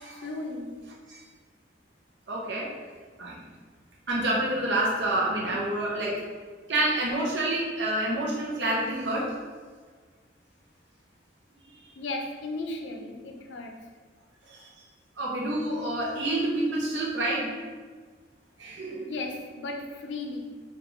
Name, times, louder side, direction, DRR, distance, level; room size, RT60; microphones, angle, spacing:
voice 1, 0.1-0.8 5.3-5.7 12.0-13.8 19.0-20.5, left 2 dB, 80° left, 3 dB, 0.5 m, -36 dB
voice 2, 2.3-2.7 3.2-3.4 4.1-6.2 6.7-9.4 14.5-14.6 15.2-17.5 18.6-19.1, right 1 dB, 70° right, -4 dB, 0.6 m, -28 dB
3.7 x 2.4 x 3.1 m, 1.5 s
head